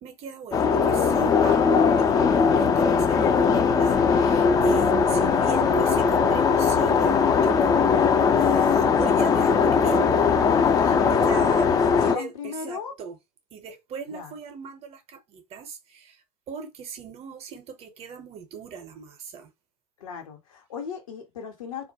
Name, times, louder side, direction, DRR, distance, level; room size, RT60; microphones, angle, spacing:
voice 1, 0.0-10.7 11.1-11.6 12.0-13.2 13.5-16.2 16.5-19.5, right 6 dB, 35° right, 0.6 m, -38 dB
sound 1, 0.5-12.2, left 5 dB, 20° left, 0.4 m, -20 dB
voice 2, 4.8-5.1 10.8-12.9 14.1-14.3 20.0-21.9, left 6 dB, 70° left, 0.9 m, -36 dB
2.2 x 2.1 x 2.8 m
figure-of-eight pair, 85°, 18 cm